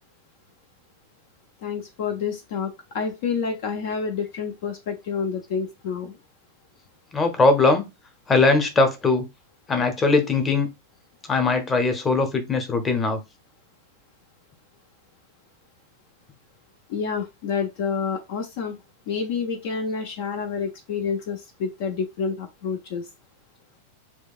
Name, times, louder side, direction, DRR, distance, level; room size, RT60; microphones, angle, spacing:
voice 1, 1.6-6.2 16.9-18.8 19.1-23.1, left 6 dB, 50° left, 0.5 m, -28 dB
voice 2, 7.1-7.8 8.3-9.2 9.7-10.7 11.3-13.2, left 3 dB, 20° left, 0.8 m, -20 dB
4.4 x 2.3 x 2.4 m
figure-of-eight pair, 90°, 0 cm